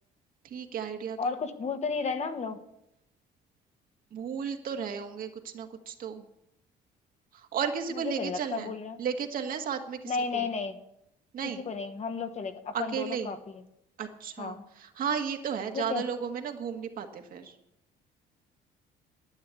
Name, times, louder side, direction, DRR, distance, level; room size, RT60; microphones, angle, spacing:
voice 1, 0.4-1.3 4.1-6.2 7.3-8.7 9.0-10.5 11.3-11.6 12.7-13.3 14.0-17.5, right 7 dB, 55° right, 5 dB, 1.7 m, -34 dB
voice 2, 1.2-2.6 7.9-9.0 10.1-10.8 11.4-13.6 14.4-14.6 15.7-16.0, left 5 dB, 40° left, 8 dB, 1.4 m, -33 dB
11.0 x 9.6 x 8.4 m, 0.82 s
cardioid pair, 110°, 17 cm